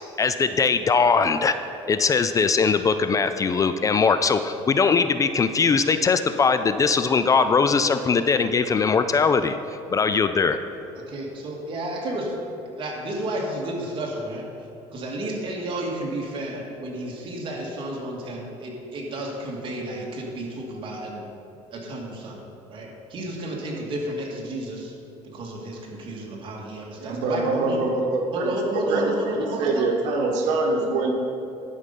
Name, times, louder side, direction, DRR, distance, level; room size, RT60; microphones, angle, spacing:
voice 1, 0.2-1.6 1.9-9.6 9.9-10.6, left 5 dB, 25° left, 10 dB, 0.4 m, -20 dB
voice 2, 11.0-12.3 12.8-14.5 14.9-21.3 21.7-22.4 22.7-24.9 25.2-27.8 28.3-29.9, right 1 dB, 45° right, -2 dB, 2.1 m, -31 dB
voice 3, 27.0-28.5 28.9-31.1, right 3 dB, 80° right, 2 dB, 1.2 m, -24 dB
11.5 x 5.5 x 5.3 m, 2.8 s
cardioid pair, 110°, 12 cm